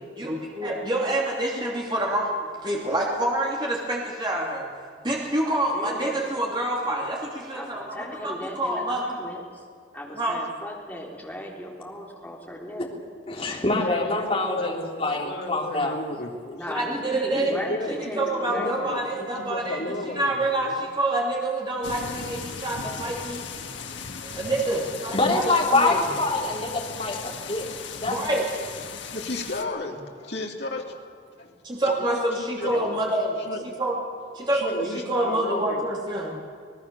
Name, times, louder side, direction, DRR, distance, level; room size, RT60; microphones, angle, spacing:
voice 1, 0.2-2.3 2.6-4.7 5.0-9.0 10.1-10.4 16.7-17.5 18.2-23.4 24.3-25.6 25.8-26.0 28.1-28.4 31.6-34.0 34.3-36.4, right 1 dB, 25° right, -2 dB, 2.8 m, -27 dB
voice 2, 5.4-6.2 7.5-9.7 9.9-12.9 16.5-19.1, equal, 10° left, -3 dB, 3.8 m, -36 dB
voice 3, 13.3-16.0 24.2-24.5 25.1-27.7 28.0-28.3, left 2 dB, 30° left, -1 dB, 3.4 m, -25 dB
voice 4, 13.8-16.6 17.3-20.8 28.9-30.9 31.4-31.5 31.9-33.0 33.5-33.6 34.5-35.8, left 2 dB, 60° left, 0 dB, 3.1 m, -33 dB
sound 1, 21.8-29.6, left 5 dB, 75° left, 1.8 m, -37 dB
26.0 x 18.5 x 7.0 m, 2.1 s
head